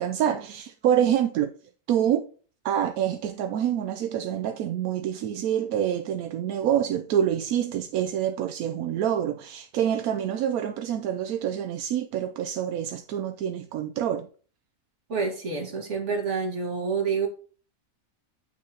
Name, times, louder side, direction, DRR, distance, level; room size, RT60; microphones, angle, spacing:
voice 1, 0.0-1.5 1.9-2.2 2.6-14.3, right 10 dB, 80° right, 1.0 m, -26 dB
voice 2, 15.1-17.3, right 5 dB, 55° right, 2.0 m, -28 dB
8.9 x 6.0 x 2.8 m
omnidirectional pair, 1.5 m